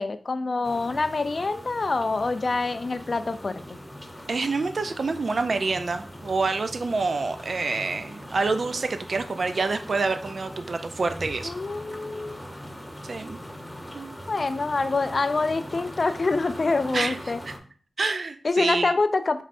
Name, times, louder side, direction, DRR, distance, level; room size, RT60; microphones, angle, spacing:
voice 1, 0.0-3.8 11.4-12.4 14.3-17.4 18.4-19.4, left 3 dB, 55° left, 11 dB, 0.4 m, -26 dB
sound 1, 0.6-17.6, equal, 5° left, 0.9 m, -41 dB
voice 2, 4.3-11.5 13.0-13.4 13.9-14.2 16.9-17.2 17.5-17.6 18.0-18.9, right 3 dB, 65° right, 9 dB, 0.4 m, -27 dB
5.3 x 3.2 x 2.6 m, 0.41 s
cardioid pair, 45°, 0 cm